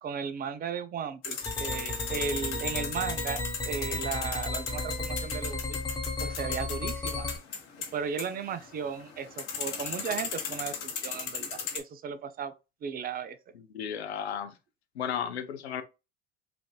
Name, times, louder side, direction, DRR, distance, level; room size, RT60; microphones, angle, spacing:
voice 1, 0.0-5.8 6.2-7.3 7.9-12.5 12.8-13.4, right 7 dB, 30° right, 0.5 m, -35 dB
sound 1, 1.2-11.8, left 6 dB, 60° left, 1.1 m, -37 dB
sound 2, 1.4-7.4, left 2 dB, 15° left, 1.1 m, -34 dB
voice 2, 13.7-14.5 15.0-15.8, left 8 dB, 90° left, 0.6 m, -33 dB
3.4 x 2.5 x 2.3 m
hypercardioid pair, 70°, 31 cm